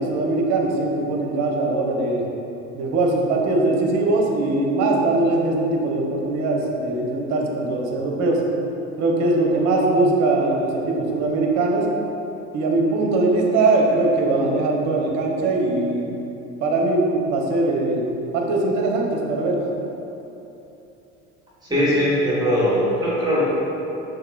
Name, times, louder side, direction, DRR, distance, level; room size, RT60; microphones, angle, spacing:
voice 1, 0.0-2.2 2.7-8.4 9.0-11.9 12.5-16.2 16.6-19.6, right 2 dB, 45° right, -1 dB, 0.8 m, -21 dB
voice 2, 21.6-23.4, equal, 10° right, -8 dB, 1.5 m, -20 dB
5.6 x 3.3 x 2.3 m, 3.0 s
figure-of-eight pair, 65°, 38 cm